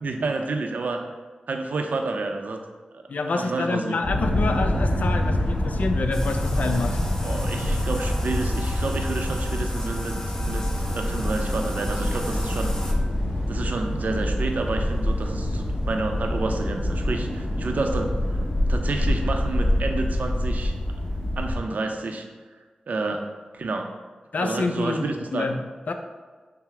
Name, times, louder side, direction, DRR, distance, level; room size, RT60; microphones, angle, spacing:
voice 1, 0.0-1.0 1.5-2.6 3.3-4.0 7.2-10.2 10.4-10.7 10.9-12.8 13.5-18.2 18.7-20.7 21.4-22.3 22.9-23.3 23.5-23.9 24.4-25.5, right 3 dB, 75° right, 4 dB, 0.5 m, -29 dB
voice 2, 3.1-7.0 24.3-25.9, left 3 dB, 70° left, 6 dB, 0.4 m, -27 dB
sound 1, 4.0-21.6, left 1 dB, 50° left, 1.5 m, -26 dB
sound 2, 4.4-16.0, right 1 dB, 20° right, 0.3 m, -36 dB
Bathtub (filling or washing), 6.1-12.9, left 1 dB, 20° left, 0.7 m, -37 dB
5.6 x 2.0 x 4.7 m, 1.4 s
cardioid pair, 60°, 3 cm